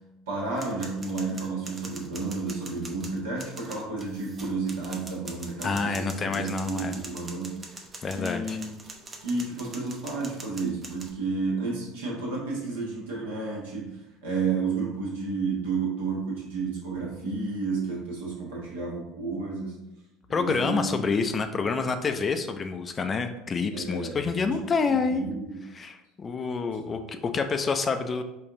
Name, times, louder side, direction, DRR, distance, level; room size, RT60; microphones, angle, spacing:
voice 1, 0.3-7.7 8.1-8.7 9.2-19.8 20.3-21.0 23.7-24.6 24.9-25.6 26.8-26.9, right 4 dB, 70° right, -3 dB, 1.3 m, -31 dB
sound 1, 0.6-11.1, right 3 dB, 30° right, 0.7 m, -44 dB
voice 2, 5.6-7.0 8.0-8.6 20.3-25.2 25.7-28.2, left 4 dB, 30° left, 7 dB, 0.4 m, -28 dB
4.9 x 2.5 x 3.7 m, 0.95 s
figure-of-eight pair, 65°, 0 cm